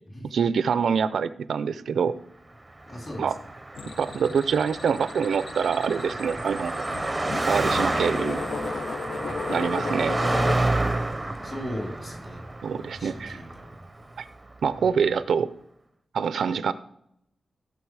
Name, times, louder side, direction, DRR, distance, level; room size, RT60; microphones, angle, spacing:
voice 1, 0.2-2.1 3.2-3.4 4.0-6.8 7.5-8.4 9.5-10.2 12.6-13.4 14.2-14.3 14.6-15.5 16.1-16.7, right 6 dB, 75° right, 14 dB, 0.5 m, -25 dB
Car passing by, 2.8-14.4, right 2 dB, 15° right, 0.7 m, -30 dB
voice 2, 2.9-3.3 11.4-12.4 12.8-13.7 14.8-14.9, equal, 30° left, 0 dB, 3.6 m, -37 dB
sound 1, 3.8-10.6, left 4 dB, 65° left, 0.6 m, -35 dB
16.0 x 7.0 x 4.7 m, 0.77 s
wide cardioid pair, 170°, 0 cm